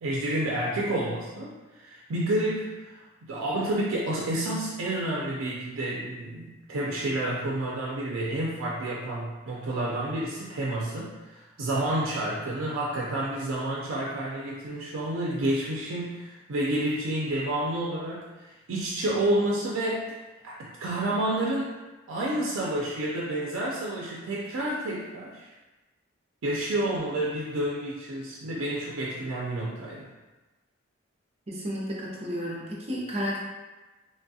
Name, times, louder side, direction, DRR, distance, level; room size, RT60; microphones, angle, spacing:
voice 1, 0.0-3.0 3.3-20.2 20.4-21.7 22.1-25.5 26.4-30.1, right 1 dB, 90° right, -4 dB, 0.4 m, -29 dB
voice 2, 31.5-33.4, equal, 30° right, -4 dB, 0.5 m, -32 dB
3.1 x 2.2 x 2.7 m, 1.2 s
head